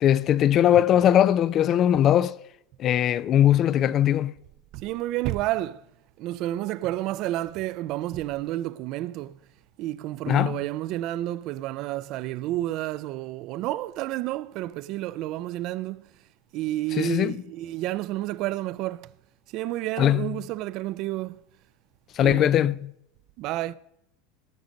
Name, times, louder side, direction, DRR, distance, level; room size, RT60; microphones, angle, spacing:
voice 1, 0.0-2.4 2.8-4.3 10.3-10.6 17.0-17.4 20.0-20.3 22.2-22.9, left 11 dB, 30° left, 0.3 m, -20 dB
voice 2, 4.7-5.8 6.2-9.4 9.8-16.1 16.5-19.1 19.5-21.4 22.2-22.5 23.4-23.8, right 15 dB, 45° right, 0.4 m, -30 dB
18.0 x 6.5 x 5.2 m
supercardioid pair, 150°, 0 cm